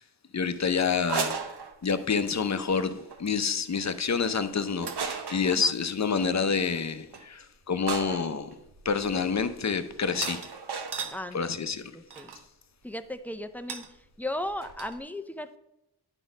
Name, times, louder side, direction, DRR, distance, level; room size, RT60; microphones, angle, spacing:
voice 1, 0.3-1.4 1.8-8.5 8.8-10.4 11.3-11.8, left 5 dB, 45° left, 0.7 m, -28 dB
sound 1, 1.0-2.2 3.0-3.2 4.8-5.6 7.1-7.3 7.9-11.2 12.1-12.4 13.7-13.9 14.2-14.3 14.5-15.0, right 5 dB, 75° right, 0.9 m, -35 dB
voice 2, 11.1-11.5 11.9-12.3 12.8-13.8 14.2-15.6, left 1 dB, 5° left, 0.5 m, -36 dB
9.9 x 4.0 x 5.1 m
wide cardioid pair, 85°, 40 cm